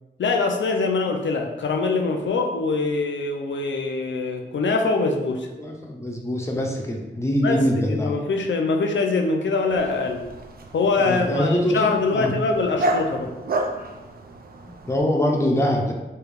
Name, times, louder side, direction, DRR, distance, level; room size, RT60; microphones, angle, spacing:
voice 1, 0.2-5.5 7.4-10.2 10.7-13.3, left 3 dB, 80° left, 3 dB, 0.5 m, -23 dB
voice 2, 5.6-8.1 11.0-12.3 14.6-15.9, equal, 15° left, 1 dB, 0.5 m, -23 dB
Dog, 9.7-15.0, right 1 dB, 55° right, 0.4 m, -31 dB
3.2 x 2.4 x 3.4 m, 1.1 s
wide cardioid pair, 105°, 19 cm